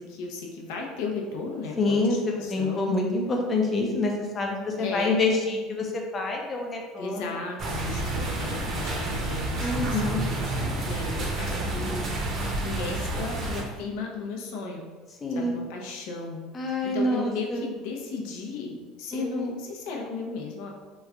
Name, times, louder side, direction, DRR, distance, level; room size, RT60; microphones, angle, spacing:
voice 1, 0.0-2.9 4.8-5.2 7.0-12.0 12.6-14.8 15.3-20.7, left 4 dB, 75° left, 0 dB, 0.7 m, -35 dB
voice 2, 1.8-7.2 9.6-10.2 15.2-15.6 16.5-17.7 19.1-19.5, left 2 dB, 25° left, 1 dB, 0.5 m, -27 dB
sound 1, 7.6-13.6, right 2 dB, 40° right, 0.7 m, -29 dB
3.1 x 2.4 x 3.5 m, 1.4 s
cardioid pair, 145°, 0 cm